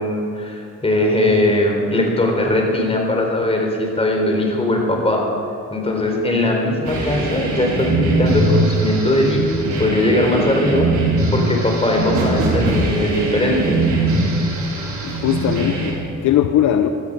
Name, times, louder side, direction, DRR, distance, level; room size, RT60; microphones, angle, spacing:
voice 1, 0.0-5.2 5.7-9.5 9.8-10.9 11.3-13.8, left 1 dB, 20° left, 1 dB, 3.9 m, -19 dB
voice 2, 5.8-6.2 15.0-16.0 16.2-16.9, left 11 dB, 75° left, 8 dB, 0.8 m, -19 dB
sound 1, 6.8-15.9, right 2 dB, 70° right, 4.0 m, -21 dB
17.0 x 13.0 x 5.3 m, 2.9 s
cardioid pair, 90°, 30 cm